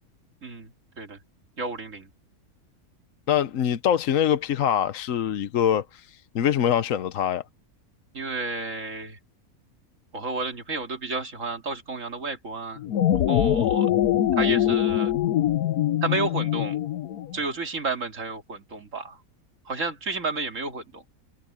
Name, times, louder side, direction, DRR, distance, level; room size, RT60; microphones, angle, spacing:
voice 1, 0.4-1.2 1.6-2.1 8.1-9.2 10.1-12.8 13.3-13.9 14.4-15.1 16.0-16.8 17.3-19.2 19.6-21.0, right 3 dB, 60° right, 3.0 m, -31 dB
voice 2, 3.3-7.4, left 9 dB, 65° left, 1.1 m, -24 dB
sound 1, 12.8-17.4, left 11 dB, 85° left, 1.3 m, -23 dB
omnidirectional pair, 1.5 m